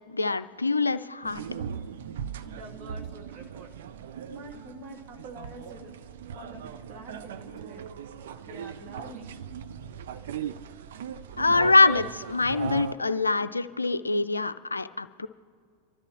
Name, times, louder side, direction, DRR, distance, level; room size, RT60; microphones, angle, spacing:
voice 1, 0.1-1.4 11.4-15.3, left 3 dB, 80° left, 13 dB, 0.4 m, -24 dB
sound 1, 1.2-12.9, right 8 dB, 60° right, 0.5 m, -39 dB
voice 2, 2.4-3.7 4.3-5.9 6.3-7.9 8.4-9.4, right 1 dB, 35° right, 1 dB, 2.2 m, -46 dB
29.0 x 13.0 x 3.1 m, 2.3 s
figure-of-eight pair, 90°, 0 cm